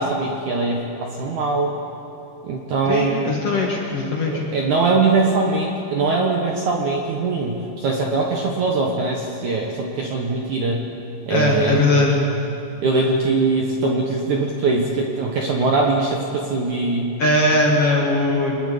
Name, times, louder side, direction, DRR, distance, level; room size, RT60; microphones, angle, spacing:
voice 1, 0.0-1.7 2.4-3.3 4.3-10.9 11.3-12.0 12.8-17.1, right 3 dB, 75° right, 0 dB, 1.7 m, -21 dB
voice 2, 2.8-4.4 11.3-12.2 17.2-18.6, left 2 dB, 60° left, -2 dB, 1.5 m, -19 dB
25.5 x 19.5 x 5.3 m, 2.8 s
omnidirectional pair, 5.4 m